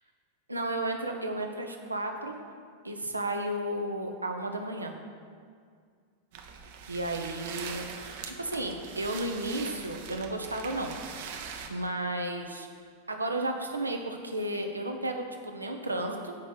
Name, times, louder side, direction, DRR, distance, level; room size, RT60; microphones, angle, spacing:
voice 1, 0.5-2.4 2.8-4.9 6.9-7.9 8.2-10.9 11.4-12.7 13.1-16.4, right 1 dB, 80° right, 3 dB, 0.8 m, -33 dB
sound 1, 6.3-11.7, right 6 dB, 50° right, 0.8 m, -42 dB
8.2 x 5.2 x 6.4 m, 2.1 s
figure-of-eight pair, 90°, 0 cm